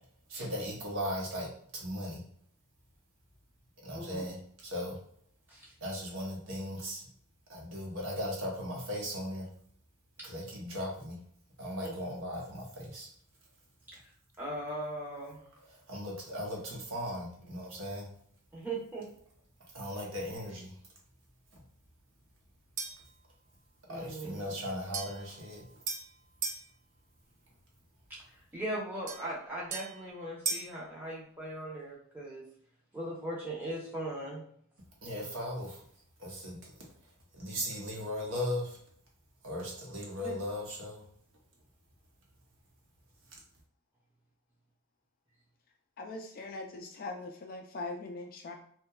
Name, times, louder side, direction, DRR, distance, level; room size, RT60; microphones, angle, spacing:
voice 1, 0.3-2.2 3.8-4.4 4.6-5.0 5.8-7.0 7.5-9.5 10.2-11.2 11.6-13.1 15.6-18.1 19.7-20.7 21.5-21.6 23.9-25.6 35.0-35.8 36.2-36.7 37.3-38.8 39.4-41.0, equal, 60° right, -3 dB, 0.8 m, -37 dB
voice 2, 14.4-15.4 18.5-19.1 23.9-24.5 28.5-32.4 32.9-34.4 40.2-40.4, right 1 dB, 10° right, -6 dB, 0.7 m, -39 dB
sound 1, 22.8-23.1 24.9-26.7 29.1-30.8, right 4 dB, 35° right, 0.3 m, -38 dB
voice 3, 46.0-48.5, left 3 dB, 45° left, 3 dB, 0.3 m, -41 dB
2.7 x 2.2 x 2.3 m, 0.64 s
head